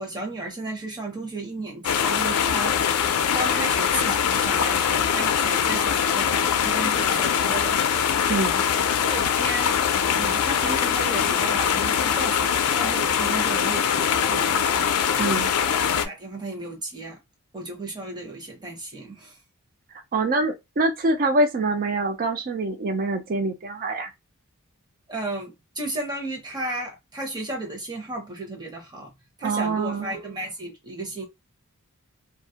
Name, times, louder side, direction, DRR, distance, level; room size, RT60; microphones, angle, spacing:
voice 1, 0.0-2.8 3.3-7.8 9.0-9.8 10.1-14.6 15.9-17.2 17.5-19.4 25.1-29.1 29.4-31.2, right 2 dB, 20° right, 0.8 m, -34 dB
sound 1, 1.8-16.1, left 8 dB, 90° left, 0.4 m, -22 dB
voice 2, 8.3-8.6 15.2-15.5 20.1-24.1 29.4-30.1, right 2 dB, 40° right, 0.4 m, -25 dB
2.3 x 2.0 x 2.7 m
head